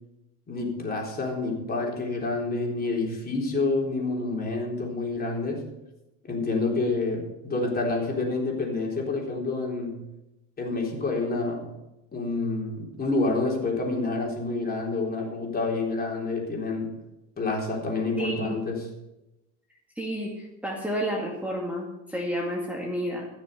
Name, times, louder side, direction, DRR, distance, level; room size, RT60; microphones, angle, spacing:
voice 1, 0.5-5.7 6.2-10.0 10.6-11.7 12.1-16.9 17.4-18.9, left 3 dB, 25° left, -1 dB, 3.8 m, -28 dB
voice 2, 18.1-18.5 20.0-23.3, equal, 5° right, -2 dB, 2.3 m, -30 dB
15.5 x 6.6 x 6.7 m, 0.94 s
supercardioid pair, 100°, 34 cm